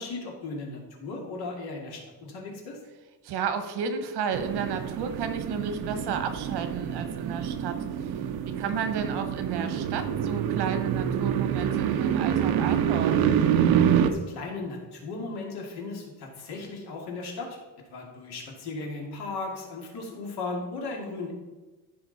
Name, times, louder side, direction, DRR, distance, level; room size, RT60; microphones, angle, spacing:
voice 1, 0.0-2.8 14.0-17.6 17.9-21.4, left 3 dB, 75° left, 0 dB, 2.6 m, -36 dB
voice 2, 3.2-8.2 8.5-13.3, right 6 dB, 85° right, 8 dB, 1.3 m, -32 dB
sound 1, 4.3-14.1, right 9 dB, 65° right, 0.8 m, -26 dB
14.0 x 5.0 x 4.2 m, 1.2 s
cardioid pair, 175°, 39 cm